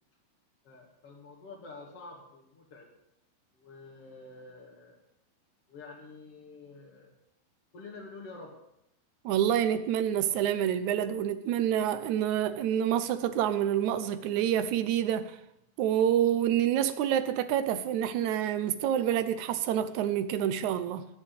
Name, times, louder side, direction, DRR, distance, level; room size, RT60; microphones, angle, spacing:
voice 1, 0.6-2.9 3.6-5.0 5.7-7.2 7.7-8.5, left 3 dB, 40° left, 2.9 m, -48 dB
voice 2, 9.3-15.4 15.8-21.1, right 10 dB, 80° right, 1.7 m, -27 dB
18.5 x 7.5 x 8.6 m
omnidirectional pair, 4.4 m